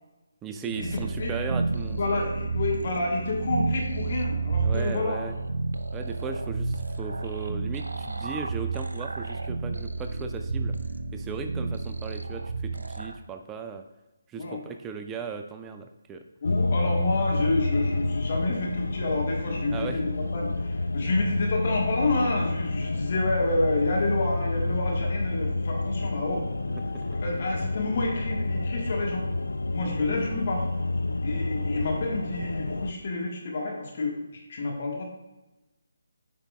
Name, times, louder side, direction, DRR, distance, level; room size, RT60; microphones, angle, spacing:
voice 1, 0.4-2.3 4.6-5.4 5.9-10.7 11.1-13.9 14.3-16.3 19.7-20.0 26.7-27.1, right 6 dB, 10° right, 6 dB, 0.3 m, -37 dB
sound 1, 0.7-13.2, right 3 dB, 75° right, 0.5 m, -31 dB
voice 2, 1.9-5.2 14.3-14.6 16.4-26.4 27.1-29.2 29.7-30.6 31.2-35.0, left 2 dB, 45° left, -1 dB, 1.4 m, -29 dB
sound 2, 16.4-32.9, left 2 dB, 75° left, 0.4 m, -29 dB
8.1 x 5.1 x 2.3 m, 1.0 s
figure-of-eight pair, 150°, 0 cm